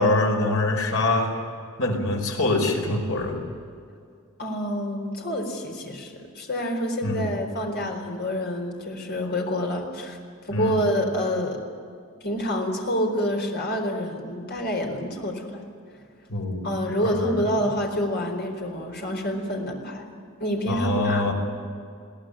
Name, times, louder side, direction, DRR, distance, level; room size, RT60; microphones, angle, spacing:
voice 1, 0.0-1.3 1.8-3.4 7.0-7.3 10.5-10.8 16.3-16.7 17.0-17.4 20.7-21.3, left 2 dB, 70° left, 2 dB, 4.8 m, -24 dB
voice 2, 4.4-10.2 10.4-11.6 12.2-15.6 16.6-21.3, equal, 50° left, 2 dB, 4.3 m, -27 dB
22.0 x 17.5 x 10.0 m, 2.3 s
head